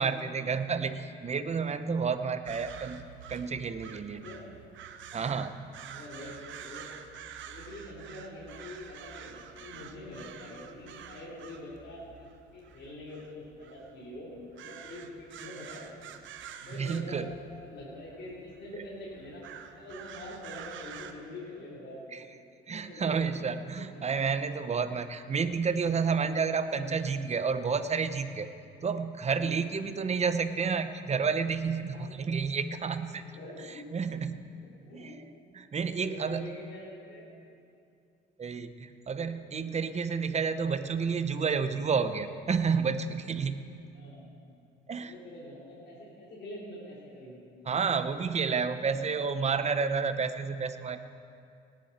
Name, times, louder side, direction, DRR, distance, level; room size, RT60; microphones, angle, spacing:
voice 1, 0.0-4.2 5.1-5.7 16.8-17.3 22.1-22.2 22.7-28.5 28.8-33.2 33.6-34.5 34.9-35.2 35.5-36.6 38.4-43.6 44.9-45.1 47.7-51.0, right 5 dB, 35° right, 10 dB, 0.8 m, -30 dB
voice 2, 0.7-1.0 4.1-4.4 5.9-6.9 7.5-14.3 14.6-15.9 16.6-17.3 17.6-19.4 19.7-22.1 22.7-23.2 23.8-24.0 29.9-30.0 31.8-32.5 33.3-33.9 34.6-35.2 35.9-37.3 39.5-39.8 43.9-44.3 45.0-47.4, left 1 dB, 60° left, -6 dB, 3.9 m, -45 dB
sound 1, 2.5-21.1, right 8 dB, 75° right, 0.9 m, -48 dB
18.5 x 10.5 x 4.4 m, 2.5 s
cardioid pair, 90°, 20 cm